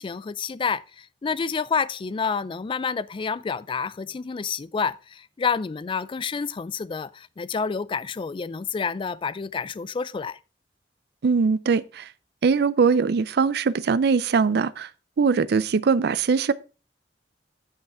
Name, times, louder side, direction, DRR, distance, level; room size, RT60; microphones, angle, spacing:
voice 1, 0.0-10.4, left 5 dB, 30° left, 0.3 m, -29 dB
voice 2, 11.2-12.1 12.4-14.9 15.2-16.5, right 5 dB, 65° right, 0.4 m, -21 dB
7.9 x 5.7 x 4.2 m
head